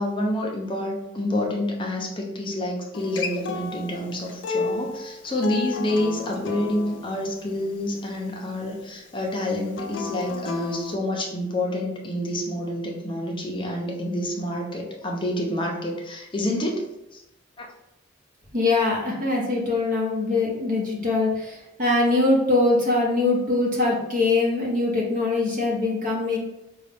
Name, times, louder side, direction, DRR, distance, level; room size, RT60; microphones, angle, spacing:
voice 1, 0.0-16.9 17.1-17.2 17.6-17.7, left 1 dB, 25° left, -1 dB, 0.6 m, -28 dB
Acoustic guitar, 2.9-8.1 9.7-11.0, left 5 dB, 75° left, 0.4 m, -33 dB
voice 2, 18.5-26.4, left 2 dB, 45° right, -3 dB, 1.1 m, -22 dB
3.8 x 2.3 x 3.4 m, 0.90 s
head